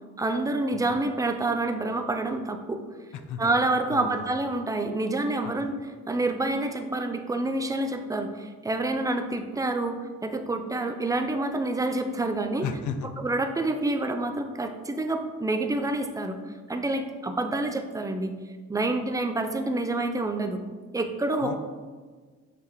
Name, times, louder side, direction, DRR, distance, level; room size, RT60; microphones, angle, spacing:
voice 1, 0.2-2.8 3.4-5.7 6.1-12.7 13.2-16.4 16.7-18.3 18.7-20.6 20.9-21.5, right 2 dB, 10° right, 6 dB, 0.6 m, -27 dB
voice 2, 3.1-3.5 3.9-4.3 5.4-5.6 12.6-13.1 21.4-21.6, left 7 dB, 75° left, 9 dB, 0.7 m, -34 dB
7.0 x 5.5 x 3.1 m, 1.4 s
cardioid pair, 90°, 30 cm